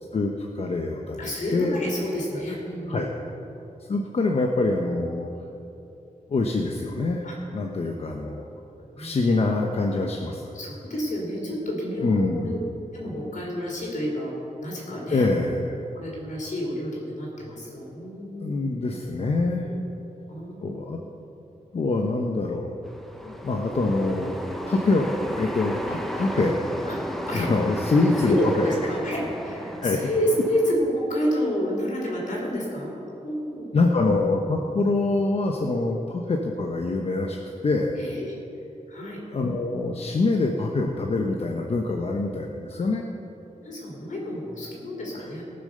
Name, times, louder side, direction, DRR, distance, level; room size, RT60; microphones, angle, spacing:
voice 1, 0.1-1.8 2.9-3.1 3.9-5.3 6.3-7.2 7.5-8.5 9.0-10.5 12.0-12.6 15.1-15.8 18.4-19.7 20.6-21.0 21.7-22.7 23.2-24.3 24.7-26.6 27.3-28.8 29.8-30.0 33.7-37.4 37.6-38.0 39.3-43.0 45.1-45.3, left 3 dB, 50° left, 1 dB, 0.8 m, -25 dB
voice 2, 1.2-3.0 7.2-7.4 8.8-9.1 10.5-12.6 12.9-15.3 15.9-18.7 19.6-19.9 20.3-20.9 26.9-27.0 27.3-27.5 28.2-33.7 37.9-38.4 38.9-39.2 42.7-42.9 43.6-45.4, equal, 65° left, -2 dB, 3.7 m, -29 dB
sound 1, 22.8-30.7, equal, ahead, 0.8 m, -33 dB
18.5 x 6.8 x 6.7 m, 2.9 s
wide cardioid pair, 175°, 14 cm